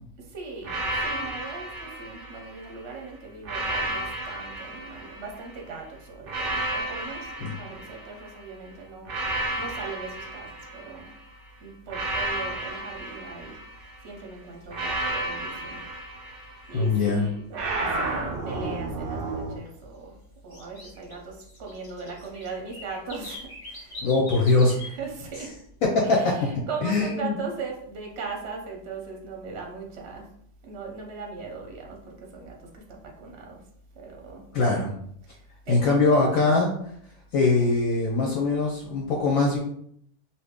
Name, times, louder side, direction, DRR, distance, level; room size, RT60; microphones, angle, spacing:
voice 1, 0.2-11.1 11.6-15.9 16.7-18.2 18.4-24.2 24.7-25.5 26.0-30.3 30.6-33.7 33.9-34.5 35.2-36.0, right 4 dB, 55° right, 0 dB, 0.7 m, -39 dB
sound 1, 0.6-2.8 3.4-5.6 6.3-8.4 9.0-11.2 11.9-14.0 14.7-16.9 17.5-19.6, right 2 dB, 85° right, 0.4 m, -32 dB
sound 2, 12.5-12.6 13.0-13.2 13.6-14.0 14.4-15.6 16.0-16.1 16.6-16.7 17.3-17.4 17.7-17.8 18.2-19.0 19.3-24.9 25.2-25.6, left 2 dB, 35° left, 0.9 m, -43 dB
voice 2, 16.7-17.3 24.0-24.8 25.9-26.3 26.8-27.3 34.5-34.9 35.7-36.7 37.3-39.6, left 3 dB, 70° left, -2 dB, 0.9 m, -22 dB
2.8 x 2.5 x 3.5 m, 0.68 s
omnidirectional pair, 1.7 m